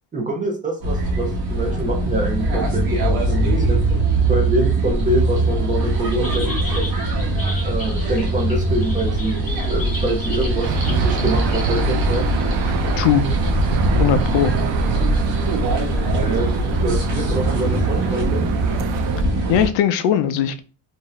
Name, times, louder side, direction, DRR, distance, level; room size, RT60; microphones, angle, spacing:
voice 1, 0.1-3.8 4.3-6.6 7.6-12.3 16.2-16.5 16.8-18.5, right 2 dB, 20° right, 0.4 m, -25 dB
sound 1, 0.8-19.7, right 2 dB, 55° right, 0.9 m, -21 dB
sound 2, 6.1-11.0 11.5-11.8 12.3-12.4, left 1 dB, 20° left, 0.7 m, -35 dB
Aircraft / Engine, 10.6-19.2, right 5 dB, 85° right, 0.5 m, -27 dB
voice 2, 14.0-14.5 19.5-20.6, left 9 dB, 85° left, 0.5 m, -19 dB
2.6 x 2.1 x 3.8 m
cardioid pair, 175°, 44 cm